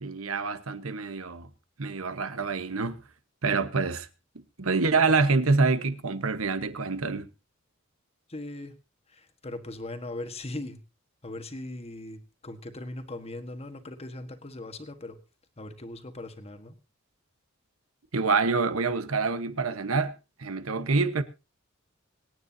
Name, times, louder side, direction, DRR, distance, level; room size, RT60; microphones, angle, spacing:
voice 1, 0.0-1.5 1.8-3.0 3.4-4.1 4.3-7.3 18.1-20.1 20.4-21.2, right 4 dB, 85° right, 1.2 m, -26 dB
voice 2, 8.3-8.7 9.1-10.8 11.2-15.2 15.6-16.8, left 2 dB, 30° left, 1.4 m, -39 dB
25.5 x 9.3 x 2.8 m
head